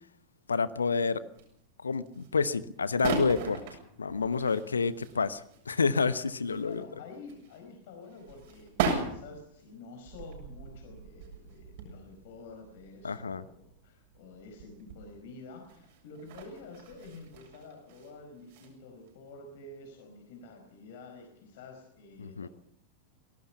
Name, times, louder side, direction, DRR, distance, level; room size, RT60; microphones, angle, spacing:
voice 1, 0.5-1.2 1.8-3.6 4.0-6.8 13.0-13.4 22.2-22.5, left 5 dB, 75° left, 16 dB, 1.0 m, -29 dB
sound 1, 1.0-1.6 1.9-2.5 2.8-6.8 7.1-15.1 15.6-18.1 18.4-18.7 19.1-19.2, right 5 dB, 50° right, 7.4 m, -39 dB
voice 2, 6.6-22.5, left 3 dB, 55° left, 4 dB, 4.5 m, -49 dB
24.0 x 18.5 x 5.8 m, 0.71 s
figure-of-eight pair, 90°, 0 cm